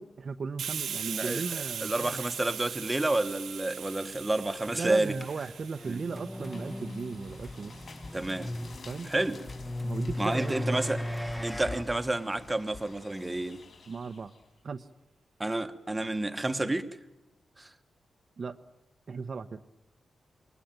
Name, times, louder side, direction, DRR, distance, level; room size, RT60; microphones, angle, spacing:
voice 1, 0.0-2.2 4.7-7.8 8.9-9.1 9.8-10.8 13.9-14.3 14.6-14.9 18.4-18.6 19.1-19.6, right 4 dB, 45° right, 0.9 m, -36 dB
Hiss, 0.6-8.0, right 8 dB, 90° right, 1.7 m, -40 dB
voice 2, 1.1-1.4 1.8-5.1 5.8-6.0 8.1-8.6 9.0-9.4 10.2-11.0 11.4-13.6 15.4-16.9 17.6-17.7, right 2 dB, 15° right, 1.3 m, -30 dB
sound 1, 5.2-11.8, left 1 dB, 10° left, 1.1 m, -37 dB
sound 2, 6.1-14.5, left 4 dB, 55° left, 4.5 m, -48 dB
28.0 x 22.0 x 9.0 m
wide cardioid pair, 145°, 0 cm